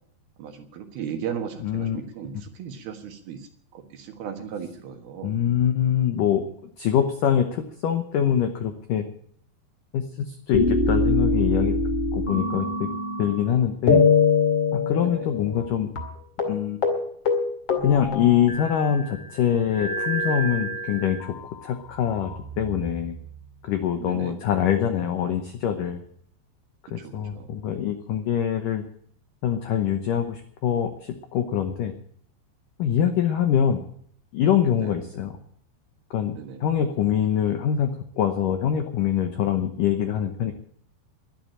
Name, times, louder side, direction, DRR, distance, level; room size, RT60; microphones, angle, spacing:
voice 1, 0.4-5.4 15.0-15.3 24.0-24.4 27.0-27.5 34.8-35.1 36.3-36.6, right 8 dB, 65° right, 6 dB, 3.0 m, -36 dB
voice 2, 1.6-2.0 5.2-6.4 6.8-9.0 9.9-11.8 12.1-12.9 13.2-14.0 14.7-15.9 16.5-16.8 17.8-21.3 21.6-23.2 23.6-26.0 26.9-28.8 29.4-31.9 32.8-33.9 34.3-35.4 36.1-37.9 38.2-40.5, left 9 dB, 80° left, 7 dB, 1.9 m, -24 dB
sound 1, 10.5-13.5 13.9-15.7 16.0-16.1 16.4-16.6 16.8-17.0 17.3-19.0 19.7-21.3 22.0-22.9, left 4 dB, 35° left, 2.2 m, -24 dB
11.5 x 11.5 x 8.7 m, 0.64 s
omnidirectional pair, 5.3 m